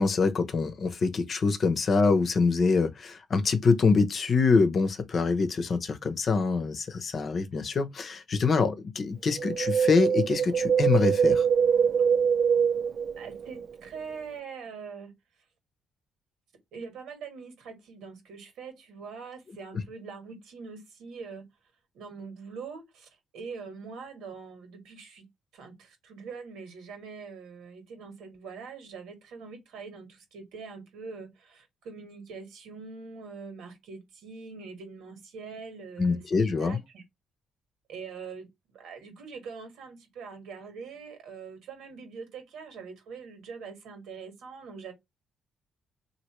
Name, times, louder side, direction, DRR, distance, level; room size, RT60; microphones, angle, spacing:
voice 1, 0.0-11.5 36.0-36.8, left 4 dB, 50° left, 0.8 m, -25 dB
Wind, 9.4-13.7 14.0-14.1, right 7 dB, 55° right, 0.4 m, -24 dB
voice 2, 13.2-15.1 16.7-21.5 21.9-25.3 25.5-37.0 37.9-44.9, right 5 dB, 85° right, 1.5 m, -43 dB
3.1 x 2.7 x 3.0 m
cardioid pair, 90°, 0 cm